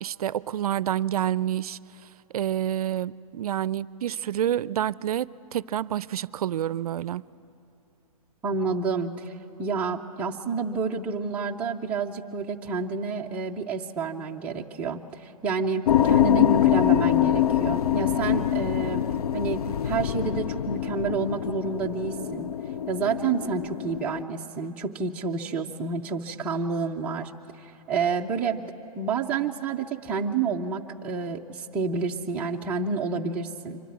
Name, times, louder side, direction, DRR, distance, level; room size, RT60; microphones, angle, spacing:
voice 1, 0.0-1.8 2.3-7.2, right 11 dB, 75° right, 20 dB, 0.4 m, -28 dB
voice 2, 8.4-19.1 19.3-22.5 22.9-27.3 27.6-28.6 29.0-33.8, right 4 dB, 5° right, 0 dB, 0.4 m, -29 dB
sound 1, 15.9-24.2, left 11 dB, 90° left, 0.5 m, -24 dB
24.5 x 12.5 x 9.3 m, 2.8 s
hypercardioid pair, 160°, 19 cm